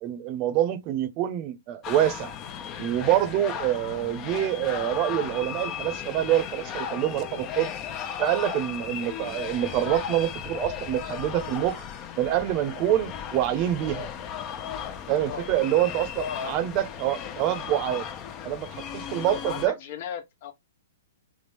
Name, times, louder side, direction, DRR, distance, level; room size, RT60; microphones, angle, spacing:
voice 1, 0.0-2.3 2.8-7.7 8.2-11.8 12.2-14.1 15.1-18.1 18.4-19.8, right 12 dB, 40° right, 0.9 m, -26 dB
sound 1, 1.8-19.7, left 8 dB, 30° left, 0.8 m, -36 dB
voice 2, 16.2-16.6 19.3-20.5, left 7 dB, 55° left, 1.2 m, -35 dB
3.6 x 3.5 x 3.4 m
hypercardioid pair, 130°, 0 cm